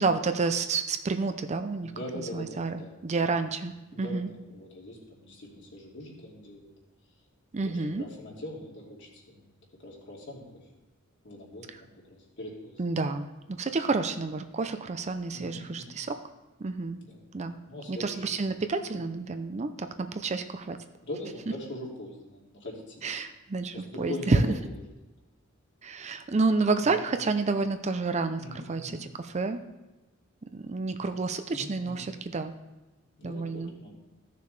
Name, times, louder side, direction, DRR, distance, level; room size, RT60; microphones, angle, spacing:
voice 1, 0.0-4.3 7.5-8.0 12.8-16.2 16.6-17.0 17.3-17.6 17.9-20.8 23.0-24.5 25.8-29.6 30.5-32.5 33.2-33.7, right 3 dB, 35° right, 9 dB, 0.5 m, -29 dB
voice 2, 1.8-2.9 3.9-6.7 7.5-9.5 9.8-10.6 11.2-12.8 15.3-15.9 17.0-17.2 17.6-18.4 21.0-23.1 23.7-24.4 26.8-27.0 28.4-29.0 31.0-31.1 31.5-32.1 33.2-33.9, left 1 dB, 60° left, -3 dB, 2.6 m, -42 dB
15.0 x 6.7 x 3.2 m, 1.0 s
head